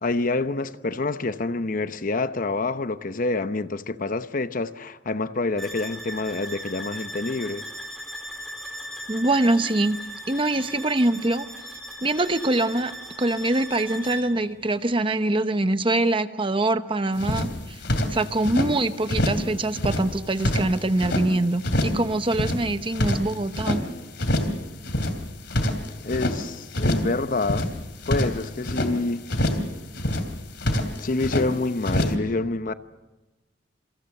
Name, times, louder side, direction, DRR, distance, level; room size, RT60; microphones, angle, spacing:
voice 1, 0.0-7.7 26.0-27.8 28.1-29.3 31.0-32.7, left 3 dB, 45° left, 0.9 m, -27 dB
sound 1, 5.6-14.4, equal, ahead, 4.2 m, -38 dB
voice 2, 9.1-10.0 10.3-11.5 12.0-12.9 13.2-17.8 18.1-23.8, right 2 dB, 30° right, 0.9 m, -24 dB
sound 2, 17.2-18.7 19.1-19.5 19.7-21.3 21.6-22.0 22.3-23.8 24.2-24.6 24.8-26.4 26.7-27.1 27.4-28.9 29.3-29.7 29.9-31.5 31.8-32.1, left 1 dB, 65° left, 3.0 m, -25 dB
27.5 x 24.5 x 6.7 m
head